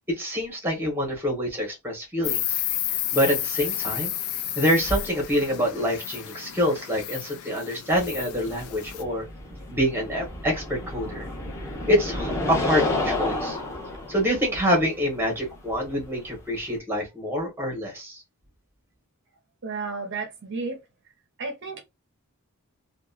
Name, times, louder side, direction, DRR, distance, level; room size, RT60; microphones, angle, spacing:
voice 1, 0.1-2.4 2.9-4.1 4.6-9.2 9.7-11.3 11.9-13.6 14.1-18.2, equal, 10° right, 1.0 m, -26 dB
Insect, 2.2-9.0, left 12 dB, 75° left, 0.4 m, -31 dB
sound 1, 7.9-16.8, left 2 dB, 15° left, 0.9 m, -31 dB
voice 2, 19.6-20.8 21.4-21.8, right 4 dB, 55° right, 0.6 m, -32 dB
2.8 x 2.3 x 2.3 m
head